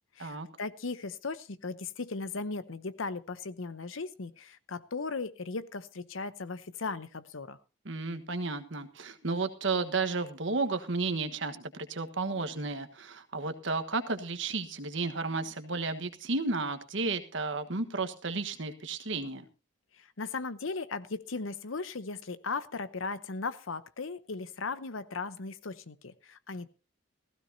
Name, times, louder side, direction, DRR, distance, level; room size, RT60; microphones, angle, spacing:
voice 1, 0.2-7.6 20.0-26.7, left 4 dB, 80° left, 14 dB, 0.9 m, -37 dB
voice 2, 7.8-19.5, right 3 dB, 65° right, 8 dB, 1.4 m, -33 dB
16.0 x 15.5 x 2.8 m, 0.31 s
head